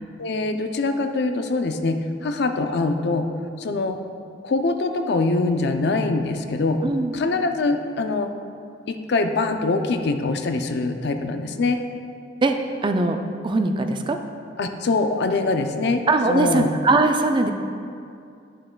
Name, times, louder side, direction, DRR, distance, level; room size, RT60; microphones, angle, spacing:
voice 1, 0.2-3.3 3.6-4.0 4.4-6.8 7.1-8.3 8.9-11.8 14.6-16.7, left 3 dB, 60° left, 7 dB, 0.5 m, -23 dB
voice 2, 6.8-7.1 12.4-12.6 12.8-14.2 16.1-17.5, right 2 dB, 25° right, 6 dB, 0.4 m, -21 dB
10.0 x 7.4 x 2.2 m, 2.4 s
head